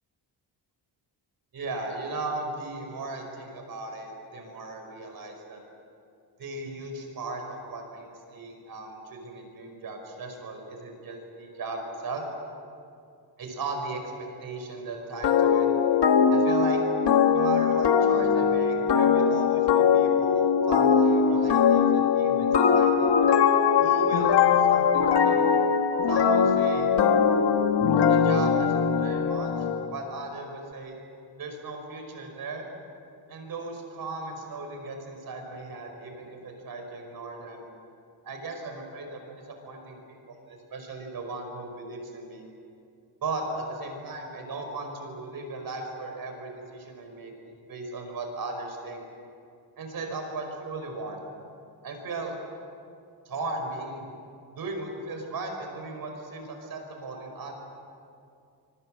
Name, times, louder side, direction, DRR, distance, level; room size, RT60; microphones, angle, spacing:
voice 1, 1.5-5.6 6.4-12.2 13.4-15.7 16.3-16.8 17.3-23.2 23.8-25.5 26.1-26.9 28.1-31.0 31.4-32.7 33.3-37.7 38.2-42.4 43.2-49.0 49.8-51.2 51.8-52.4 53.3-54.1 54.6-57.6, right 2 dB, 55° right, 4 dB, 5.3 m, -36 dB
sound 1, 15.2-29.8, left 6 dB, 70° left, 1.6 m, -21 dB
26.0 x 24.5 x 7.7 m, 2.4 s
wide cardioid pair, 180°, 42 cm